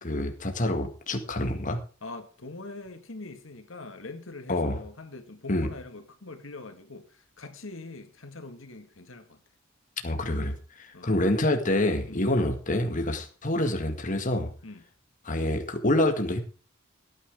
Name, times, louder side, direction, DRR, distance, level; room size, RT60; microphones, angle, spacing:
voice 1, 0.0-1.8 4.5-4.8 5.5-5.7 10.0-14.5 15.2-16.4, left 1 dB, 40° left, 2.0 m, -27 dB
voice 2, 2.0-9.4 10.9-11.1 12.1-12.4 14.6-14.8, left 3 dB, 75° left, 2.0 m, -43 dB
17.5 x 10.0 x 3.7 m
head